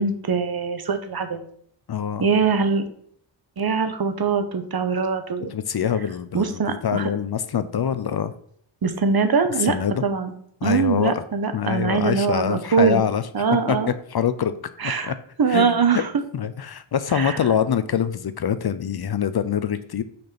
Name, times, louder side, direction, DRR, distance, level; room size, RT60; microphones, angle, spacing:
voice 1, 0.0-1.4 2.2-2.9 3.6-5.5 6.3-7.1 8.8-9.7 10.0-10.3 10.6-13.0 13.3-13.9 14.8-15.1 15.4-16.1 17.1-17.4, right 5 dB, 50° right, 8 dB, 1.0 m, -22 dB
voice 2, 1.9-2.3 5.5-8.3 9.7-10.0 10.6-11.2 11.5-13.2 13.7-13.8 14.1-14.5 14.8-15.1 15.5-16.0 16.3-20.0, left 8 dB, 55° left, 13 dB, 0.6 m, -24 dB
6.3 x 4.3 x 5.9 m, 0.64 s
wide cardioid pair, 100°, 47 cm